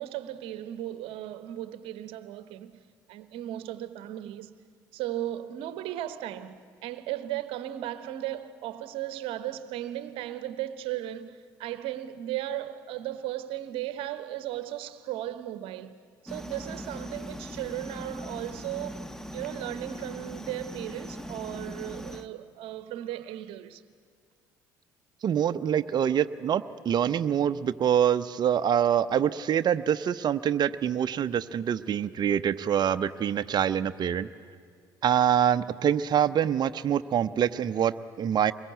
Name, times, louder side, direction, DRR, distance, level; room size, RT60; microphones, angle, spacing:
voice 1, 0.0-2.8 3.1-4.6 4.9-15.9 16.2-23.8, right 13 dB, 65° right, 1.0 m, -36 dB
sound 1, 16.3-22.3, equal, 5° left, 1.4 m, -40 dB
voice 2, 25.2-34.3 35.0-38.5, right 9 dB, 45° right, 0.8 m, -25 dB
23.5 x 21.5 x 9.4 m
hypercardioid pair, 55°, 10 cm